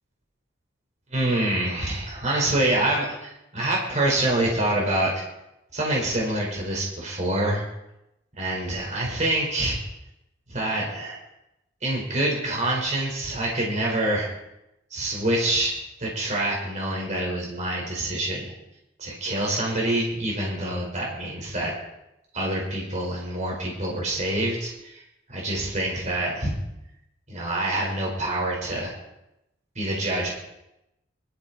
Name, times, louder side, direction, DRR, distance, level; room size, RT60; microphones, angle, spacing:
voice 1, 1.1-5.2 5.7-7.6 8.4-9.8 10.5-11.2 11.8-14.3 14.9-15.7 16.0-18.5 19.0-21.7 22.3-26.6 27.3-28.9 29.7-30.3, right 1 dB, 35° right, -3 dB, 4.7 m, -26 dB
23.5 x 13.5 x 4.3 m, 0.89 s
head